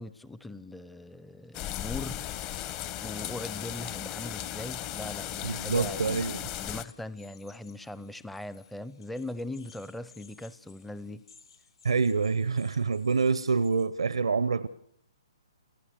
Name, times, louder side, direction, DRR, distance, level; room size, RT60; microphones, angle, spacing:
voice 1, 0.0-2.2 3.0-11.2, left 1 dB, 5° left, 0.8 m, -40 dB
sound 1, 1.5-13.9, left 7 dB, 65° left, 5.4 m, -58 dB
sound 2, 1.5-6.8, left 12 dB, 30° left, 1.2 m, -36 dB
voice 2, 5.4-6.4 11.8-14.7, right 4 dB, 75° right, 0.8 m, -26 dB
30.0 x 15.5 x 6.7 m
figure-of-eight pair, 125°, 3 cm